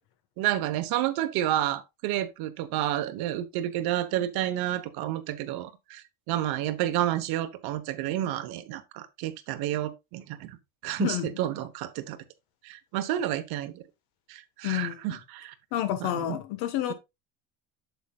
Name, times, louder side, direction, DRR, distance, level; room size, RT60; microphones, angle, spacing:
voice 1, 0.4-10.6 10.8-12.2 12.6-13.8 14.3-15.5 16.0-16.4, right 13 dB, 65° right, 1.1 m, -30 dB
voice 2, 14.6-15.1 15.7-16.9, left 12 dB, 75° left, 1.4 m, -29 dB
8.1 x 7.2 x 2.3 m
cardioid pair, 140°, 39 cm